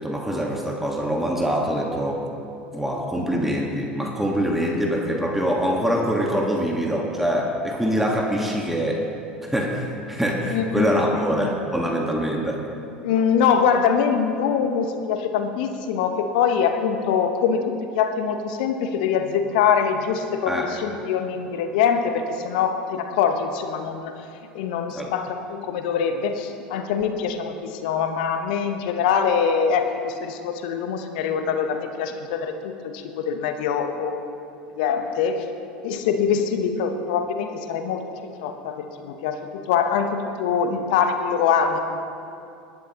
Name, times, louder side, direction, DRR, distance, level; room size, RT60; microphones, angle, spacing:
voice 1, 0.0-2.2 2.7-9.1 9.4-12.7 20.5-20.7 24.9-25.1, equal, 5° right, 0 dB, 1.5 m, -24 dB
voice 2, 10.5-11.0 11.4-11.5 13.0-24.1 24.5-34.3 34.7-35.4 35.8-41.8, left 7 dB, 65° left, 7 dB, 0.9 m, -24 dB
20.5 x 10.5 x 3.0 m, 2.7 s
hypercardioid pair, 75°, 5 cm